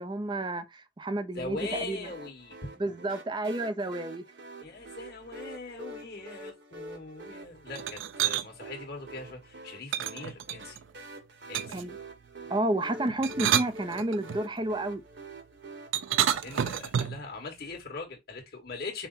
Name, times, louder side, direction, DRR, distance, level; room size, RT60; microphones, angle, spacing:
voice 1, 0.0-2.1 2.8-4.2 11.7-12.0 12.5-15.0, right 1 dB, 25° right, 0.4 m, -31 dB
voice 2, 1.3-2.7 4.6-10.8 11.5-11.9 16.2-19.1, left 3 dB, 50° left, 1.7 m, -41 dB
sound 1, 1.6-16.3, right 2 dB, 60° right, 1.1 m, -46 dB
sound 2, 7.7-8.5 9.9-10.8 11.5-11.9 13.1-14.4 15.9-17.3, right 10 dB, 80° right, 0.4 m, -29 dB
5.5 x 2.1 x 4.0 m
head